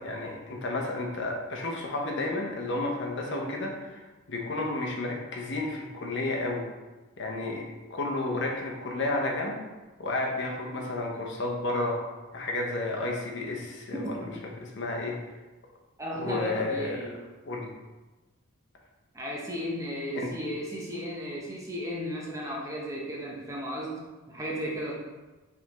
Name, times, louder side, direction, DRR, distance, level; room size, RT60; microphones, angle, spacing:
voice 1, 0.0-4.0 4.3-6.7 7.2-9.6 10.0-12.0 12.3-14.1 14.4-15.2 16.1-16.8 17.5-17.7 20.1-20.3, left 2 dB, 60° left, 0 dB, 0.8 m, -32 dB
voice 2, 3.2-3.6 13.9-14.3 16.0-17.2 19.1-24.0 24.3-24.9, equal, 15° right, -3 dB, 0.6 m, -34 dB
4.9 x 3.5 x 3.0 m, 1.2 s
head